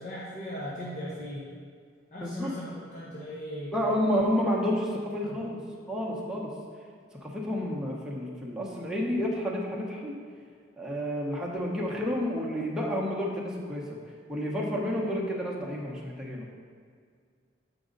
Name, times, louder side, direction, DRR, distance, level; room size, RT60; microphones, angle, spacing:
voice 1, 0.0-1.4 2.1-3.7 5.2-5.4, equal, 45° left, -7 dB, 1.2 m, -38 dB
voice 2, 2.2-2.5 3.7-6.5 7.1-10.2 10.8-14.0 14.3-16.5, equal, 5° right, -4 dB, 1.0 m, -30 dB
7.6 x 5.2 x 3.9 m, 2.1 s
head